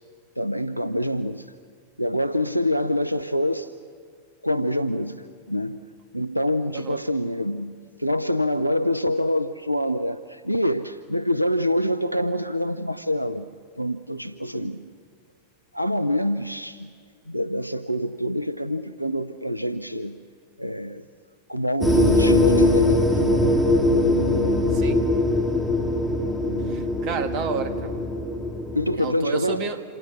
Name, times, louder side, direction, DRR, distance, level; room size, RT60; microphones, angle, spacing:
voice 1, 0.4-1.5 2.0-3.7 4.4-5.8 6.1-7.7 8.0-13.5 13.8-14.8 15.7-16.9 17.3-20.1 20.6-21.0 21.5-23.3 28.7-29.7, equal, 90° right, 11 dB, 0.6 m, -25 dB
sound 1, 21.8-28.9, left 2 dB, ahead, 3.1 m, -21 dB
voice 2, 26.7-27.9 29.0-29.8, right 6 dB, 40° right, 8 dB, 2.1 m, -30 dB
27.5 x 26.5 x 6.3 m, 2.1 s
figure-of-eight pair, 90°, 0 cm